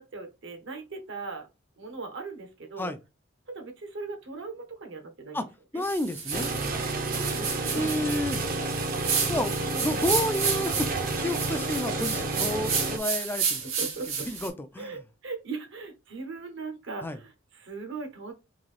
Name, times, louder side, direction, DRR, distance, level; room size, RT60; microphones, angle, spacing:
voice 1, 0.0-1.5 1.8-2.9 3.5-5.4 5.7-5.9 7.1-8.2 11.7-11.8 13.2-13.3 13.6-14.3 14.7-18.3, right 3 dB, 65° right, 1.0 m, -39 dB
voice 2, 5.7-6.5 7.7-8.4 9.3-13.6 14.3-14.9 17.0-17.2, left 1 dB, 10° left, 0.4 m, -31 dB
sound 1, 5.8-14.5, right 6 dB, 85° right, 1.4 m, -32 dB
sound 2, 6.3-13.0, right 2 dB, 45° right, 0.7 m, -30 dB
3.8 x 2.7 x 3.2 m
head